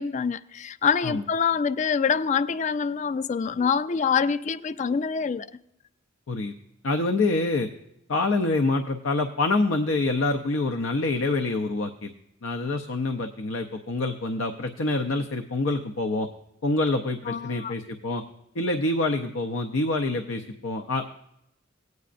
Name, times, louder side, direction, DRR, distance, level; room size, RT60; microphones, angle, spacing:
voice 1, 0.0-5.5 17.3-17.7, left 6 dB, 40° left, 0.3 m, -25 dB
voice 2, 6.8-7.7 8.1-12.1 12.4-16.3 16.6-18.2 18.5-21.1, left 2 dB, 85° left, 0.6 m, -26 dB
17.0 x 9.4 x 2.5 m
head